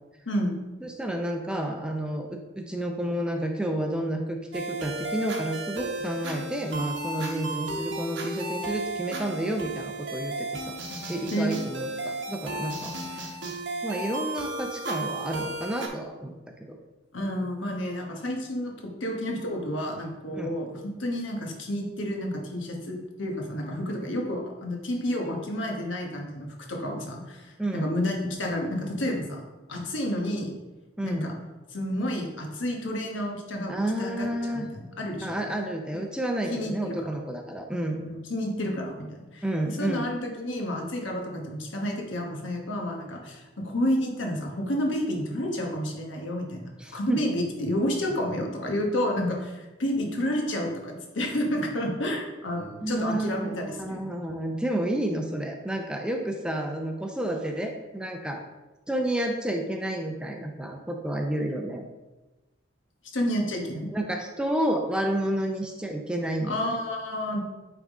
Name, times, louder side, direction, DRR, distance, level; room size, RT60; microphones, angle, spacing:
voice 1, 0.8-10.8 11.1-13.3 13.8-16.4 16.7-16.8 20.3-20.5 27.6-27.9 31.0-31.3 33.7-34.7 35.2-38.0 39.4-40.0 46.8-47.2 52.8-58.4 58.9-61.9 63.9-66.6, right 1 dB, 5° right, 3 dB, 0.5 m, -30 dB
sound 1, 4.5-15.9, right 2 dB, 65° right, 0.9 m, -34 dB
voice 2, 11.3-11.6 17.1-29.4 29.7-30.5 31.0-31.3 31.7-35.3 36.5-37.0 38.0-54.2 63.1-63.9 66.5-67.4, equal, 80° left, 1 dB, 1.2 m, -30 dB
9.1 x 3.6 x 3.6 m, 1.1 s
head